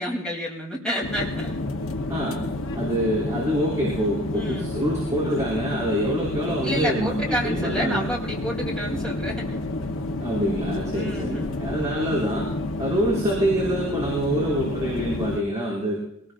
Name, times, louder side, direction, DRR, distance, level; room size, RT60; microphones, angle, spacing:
voice 1, 0.0-1.6 4.3-4.7 6.6-9.6 10.9-11.5, equal, 5° left, -4 dB, 3.2 m, -29 dB
sound 1, 1.0-15.4, left 2 dB, 65° left, 1.0 m, -30 dB
voice 2, 2.1-2.4 2.7-8.0 10.2-12.5 12.8-16.0, equal, 15° right, -9 dB, 5.6 m, -25 dB
25.5 x 19.5 x 2.6 m, 0.76 s
head